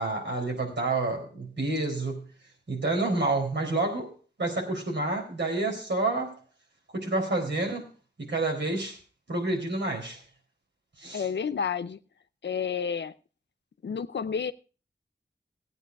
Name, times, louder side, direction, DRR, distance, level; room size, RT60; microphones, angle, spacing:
voice 1, 0.0-2.3 2.7-4.1 4.4-6.3 6.9-7.9 8.2-9.0 9.3-10.2 11.0-11.3, right 2 dB, 85° right, 4.3 m, -29 dB
voice 2, 11.1-12.0 12.4-13.1 13.8-14.5, left 6 dB, 85° left, 0.6 m, -30 dB
15.5 x 9.2 x 4.7 m
cardioid pair, 50°, 18 cm